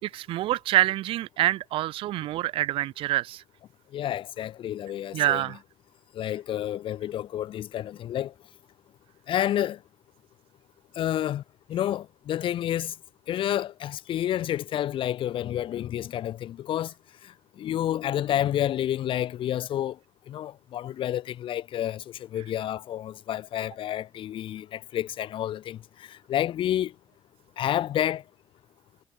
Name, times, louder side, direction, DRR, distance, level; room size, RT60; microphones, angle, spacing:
voice 1, 0.0-3.4 5.1-5.6, right 15 dB, 70° right, 2.0 m, -26 dB
voice 2, 3.9-5.6 6.1-8.3 9.3-9.8 11.0-11.4 11.7-12.9 13.3-16.9 17.6-20.0 20.3-25.8 26.1-26.9 27.6-28.2, left 11 dB, 65° left, 7.5 m, -29 dB
supercardioid pair, 70°, 10 cm